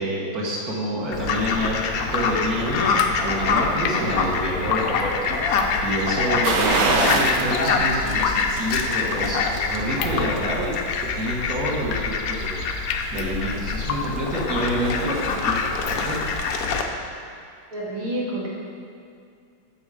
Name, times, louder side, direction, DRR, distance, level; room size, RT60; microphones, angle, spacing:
voice 1, 0.0-1.8 2.1-16.2, equal, 50° right, -4 dB, 1.9 m, -28 dB
Drip, 1.0-16.5, left 8 dB, 85° left, 1.4 m, -33 dB
Fowl, 1.1-16.8, left 4 dB, 70° left, 0.8 m, -25 dB
sound 1, 6.4-7.5 7.9-8.0 9.5-10.3 10.7-10.8, right 4 dB, 65° right, 1.3 m, -23 dB
voice 2, 17.7-18.5, right 1 dB, 85° right, -6 dB, 2.8 m, -28 dB
8.1 x 6.5 x 4.9 m, 2.4 s
omnidirectional pair, 2.2 m